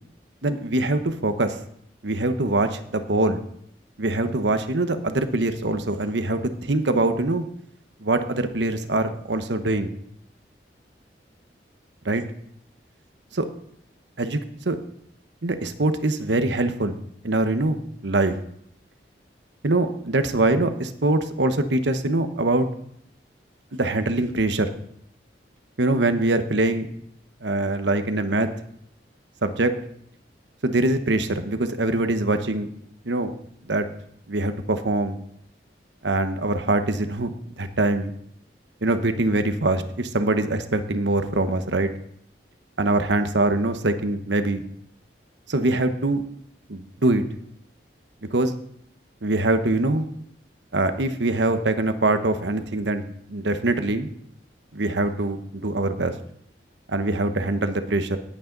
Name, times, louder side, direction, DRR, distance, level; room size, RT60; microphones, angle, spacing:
voice 1, 0.4-1.6 2.0-3.4 4.0-7.4 8.0-9.9 12.0-12.2 13.3-13.5 14.2-14.4 14.6-14.8 15.4-17.0 17.2-18.4 19.6-22.7 23.7-24.7 25.8-26.9 27.4-28.5 29.4-29.7 30.6-32.7 33.0-33.3 33.6-33.9 34.3-35.2 36.0-38.1 38.8-41.9 42.8-44.6 45.5-46.2 46.7-47.2 48.2-48.5 49.2-50.1 50.7-54.1 54.7-56.1 56.9-58.2, right 2 dB, 85° right, 9 dB, 1.1 m, -23 dB
18.5 x 8.6 x 4.0 m, 0.68 s
head